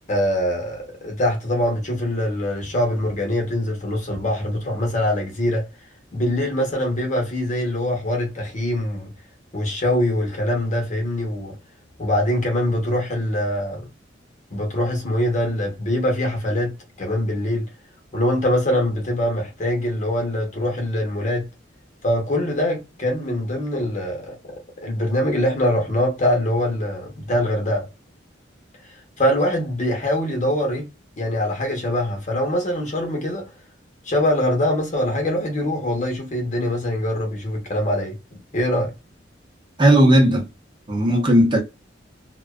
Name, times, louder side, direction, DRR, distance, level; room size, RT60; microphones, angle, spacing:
voice 1, 0.1-5.7 6.1-9.1 9.5-11.6 12.0-13.9 14.5-17.7 18.1-21.5 22.0-27.9 28.8-30.9 31.2-33.5 34.0-38.2 38.5-38.9, left 1 dB, 40° left, 0.9 m, -23 dB
voice 2, 39.8-40.5 40.9-41.6, right 1 dB, 25° right, 0.7 m, -15 dB
2.5 x 2.2 x 2.3 m
head